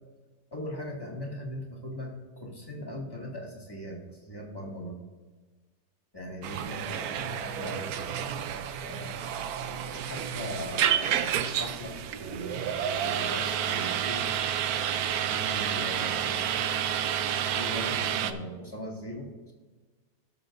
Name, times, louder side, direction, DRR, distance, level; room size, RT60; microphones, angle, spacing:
voice 1, 0.5-5.0 6.1-8.1 8.8-9.2 9.7-14.2 15.3-16.7 17.5-19.5, equal, 15° left, -3 dB, 1.9 m, -40 dB
sound 1, 6.4-18.3, right 9 dB, 70° right, 0.9 m, -30 dB
18.5 x 6.9 x 2.6 m, 1.3 s
omnidirectional pair, 1.9 m